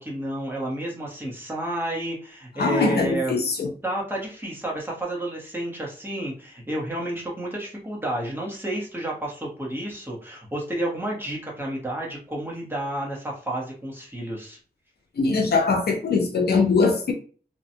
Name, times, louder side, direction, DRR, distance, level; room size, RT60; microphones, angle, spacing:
voice 1, 0.0-3.4 3.8-14.6, right 1 dB, 15° right, 1.1 m, -31 dB
voice 2, 2.6-3.7 15.2-17.1, left 4 dB, 80° left, 0.6 m, -21 dB
2.8 x 2.3 x 2.7 m
wide cardioid pair, 95°, 16 cm